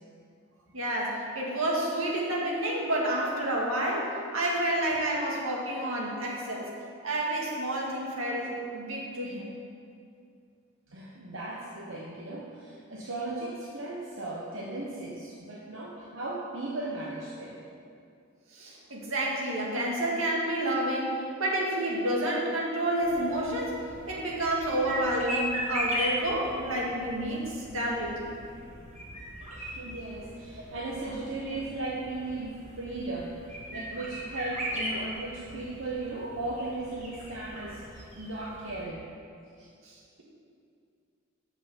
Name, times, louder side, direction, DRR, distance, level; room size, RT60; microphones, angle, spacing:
voice 1, 0.7-6.7 7.0-9.5 18.5-28.3 39.9-40.2, right 1 dB, 85° right, -3 dB, 2.0 m, -29 dB
voice 2, 10.9-17.7 29.5-33.4 33.7-39.1 39.6-39.7, right 2 dB, 65° right, -4 dB, 1.0 m, -37 dB
sound 1, 23.0-38.8, equal, 35° right, 1.7 m, -38 dB
7.8 x 6.3 x 7.0 m, 2.4 s
head